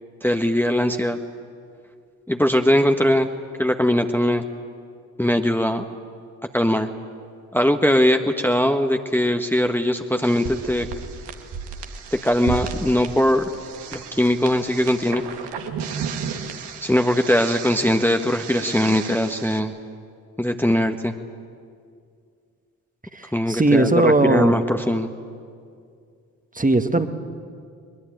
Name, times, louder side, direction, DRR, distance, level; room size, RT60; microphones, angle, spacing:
voice 1, 0.2-1.2 2.3-3.3 3.6-4.5 5.2-5.9 6.5-6.9 7.5-10.9 12.1-13.4 13.9-15.2 16.8-19.7 20.4-21.1 23.3-25.1, left 1 dB, 5° left, 5 dB, 1.3 m, -20 dB
sound 1, 10.2-19.6, right 6 dB, 70° right, 1.9 m, -34 dB
voice 2, 23.1-24.6 26.6-27.1, right 2 dB, 20° right, 8 dB, 1.7 m, -18 dB
21.5 x 21.0 x 9.1 m, 2.3 s
hypercardioid pair, 45°, 42 cm